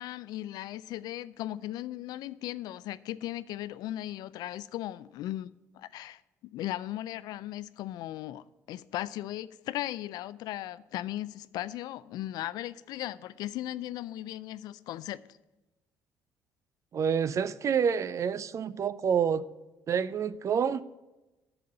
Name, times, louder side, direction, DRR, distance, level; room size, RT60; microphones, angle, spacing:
voice 1, 0.0-5.5 5.8-15.2, left 14 dB, 70° left, 0.4 m, -37 dB
voice 2, 16.9-19.4 19.9-20.8, right 7 dB, 45° right, 0.5 m, -28 dB
7.0 x 6.9 x 7.6 m
supercardioid pair, 65°, 7 cm